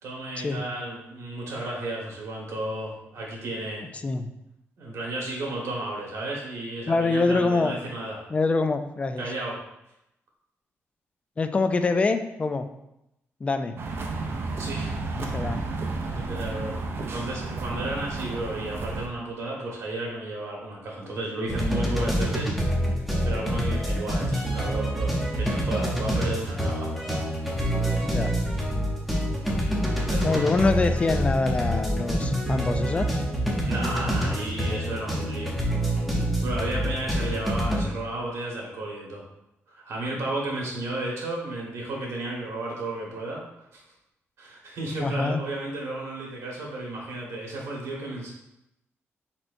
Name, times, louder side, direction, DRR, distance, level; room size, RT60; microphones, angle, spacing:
voice 1, 0.0-3.8 4.8-8.2 9.2-9.6 14.6-15.1 16.1-22.5 23.2-26.9 30.1-30.7 33.7-35.5 36.4-39.2 39.7-43.4 43.7-43.8 44.4-48.3, right 2 dB, 75° right, -2 dB, 1.4 m, -33 dB
voice 2, 6.9-7.7 8.3-9.3 11.4-12.7 13.4-13.8 15.2-15.6 28.0-28.3 30.2-33.2 45.0-45.4, left 3 dB, 25° left, 9 dB, 0.3 m, -25 dB
sound 1, 13.8-19.1, right 3 dB, 55° right, 0.5 m, -32 dB
sound 2, 21.5-37.8, equal, ahead, 0.8 m, -26 dB
4.4 x 4.3 x 2.6 m, 0.85 s
wide cardioid pair, 140°, 5 cm